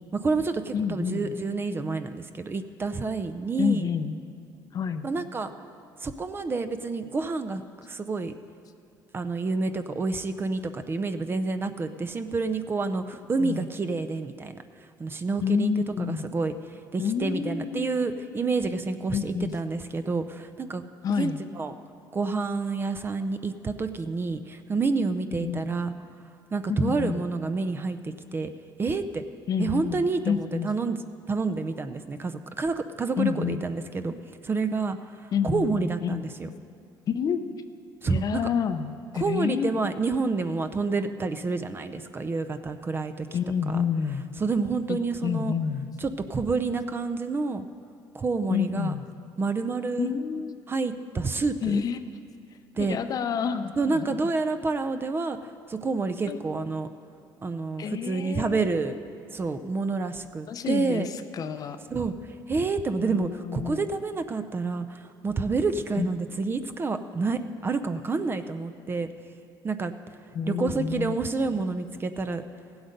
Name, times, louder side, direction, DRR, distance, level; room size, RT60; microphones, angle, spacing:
voice 1, 0.1-3.9 5.0-5.5 6.0-8.3 9.1-14.6 15.0-16.5 16.9-20.8 21.2-21.7 22.1-25.9 26.5-28.5 28.8-29.2 29.6-31.0 31.3-34.1 34.4-35.0 35.4-36.5 38.0-38.4 39.2-43.3 43.7-43.8 44.4-45.5 46.0-47.6 48.1-48.9 49.4-50.1 50.7-51.8 52.8-53.0 53.8-55.4 55.7-56.9 57.4-59.0 59.3-61.1 61.9-62.1 62.5-69.1 69.6-69.9 70.5-72.4, right 4 dB, 25° right, 9 dB, 0.5 m, -28 dB
voice 2, 0.7-1.3 3.6-4.2 4.7-5.1 13.4-13.7 15.4-16.3 17.0-18.2 19.1-19.6 21.0-21.4 25.3-25.7 26.7-27.2 29.5-30.7 33.2-33.6 35.3-36.3 37.1-37.4 38.0-39.7 43.3-44.2 44.9-45.9 48.5-49.1 50.0-50.6 51.6-52.1 52.8-54.3 56.3-56.4 57.8-58.9 60.5-61.8 63.0-63.9 66.0-66.1 70.3-71.2, left 7 dB, 45° left, 9 dB, 0.6 m, -29 dB
16.0 x 8.0 x 5.2 m, 2.3 s
cardioid pair, 110°, 9 cm